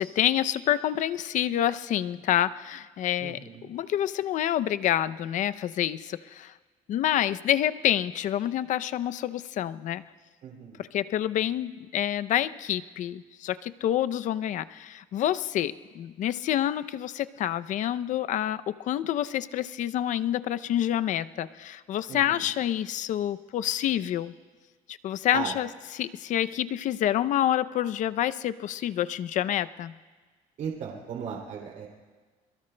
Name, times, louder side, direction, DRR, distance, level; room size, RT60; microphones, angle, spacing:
voice 1, 0.0-3.4 3.7-6.5 6.9-10.0 10.8-24.3 24.9-29.9, left 11 dB, 55° left, 14 dB, 0.5 m, -28 dB
voice 2, 3.2-3.7 10.4-10.8 22.1-22.4 25.3-25.5 30.6-31.9, right 7 dB, 55° right, -1 dB, 2.7 m, -36 dB
29.0 x 22.5 x 2.2 m, 1.4 s
cardioid pair, 125°, 16 cm